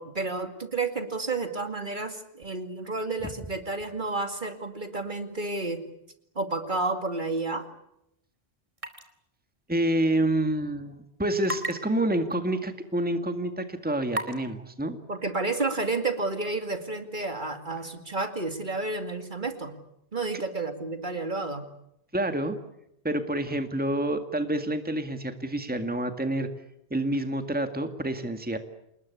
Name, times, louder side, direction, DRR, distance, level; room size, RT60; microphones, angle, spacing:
voice 1, 0.0-5.8 6.4-7.7 15.1-19.7 20.1-21.7, right 3 dB, 45° right, 7 dB, 2.5 m, -31 dB
sound 1, 8.8-9.1 9.4-9.5 11.4-11.7 12.3-12.4 13.1-13.2 14.1-14.4, right 1 dB, 30° right, 3.0 m, -32 dB
voice 2, 9.7-15.0 22.1-22.6 23.0-26.5 26.9-28.6, right 1 dB, 10° right, 7 dB, 1.9 m, -28 dB
29.0 x 20.5 x 8.4 m, 0.81 s
omnidirectional pair, 1.1 m